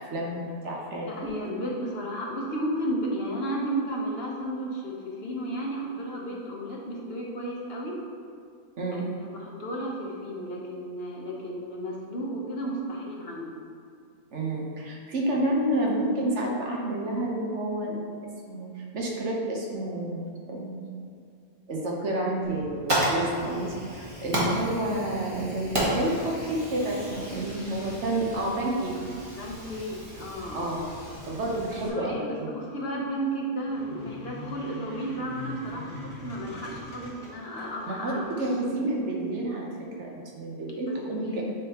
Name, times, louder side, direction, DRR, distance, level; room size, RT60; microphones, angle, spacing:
voice 1, 0.0-1.3 8.8-9.1 14.3-18.0 18.5-20.8 21.7-28.9 30.5-30.8 31.3-32.5 38.0-38.1 38.4-39.7 40.0-41.4, right 1 dB, 70° right, -2 dB, 1.2 m, -29 dB
voice 2, 1.0-8.0 8.9-13.5 29.4-30.8 31.9-38.5 41.1-41.4, right 1 dB, 55° left, -2 dB, 1.1 m, -33 dB
Fire, 22.4-31.9, right 1 dB, 25° right, 1.3 m, -33 dB
sound 1, 33.6-38.6, left 2 dB, 80° left, 1.7 m, -43 dB
8.9 x 3.6 x 2.9 m, 2.4 s
omnidirectional pair, 1.3 m